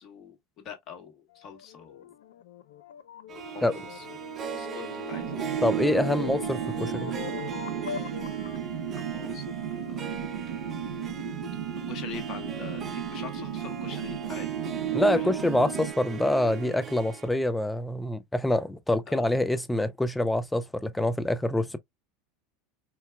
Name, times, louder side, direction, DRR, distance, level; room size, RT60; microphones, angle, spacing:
voice 1, 0.0-2.1 3.4-4.1 4.5-5.3 8.9-10.1 11.9-14.6 15.0-15.3 19.1-19.3, left 7 dB, 45° left, 1.4 m, -44 dB
sound 1, 1.3-8.7, left 8 dB, 75° left, 0.5 m, -41 dB
Harp, 3.3-17.3, right 10 dB, 35° right, 0.6 m, -37 dB
sound 2, 5.1-15.9, right 7 dB, 75° right, 0.8 m, -35 dB
voice 2, 5.6-7.2 14.9-21.8, left 1 dB, 5° left, 0.5 m, -26 dB
4.5 x 2.2 x 2.2 m
hypercardioid pair, 85°, 0 cm